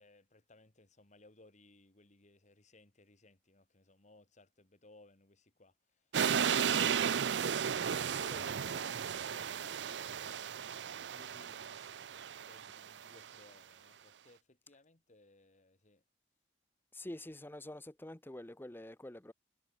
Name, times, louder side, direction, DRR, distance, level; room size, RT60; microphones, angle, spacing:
voice 1, 0.0-7.5 7.8-10.8 11.1-12.1 12.4-16.0, left 2 dB, 45° left, 2.2 m, -61 dB
sound 1, 6.1-13.2, right 7 dB, 85° right, 0.5 m, -34 dB
voice 2, 16.9-19.3, left 1 dB, 15° left, 0.9 m, -47 dB
head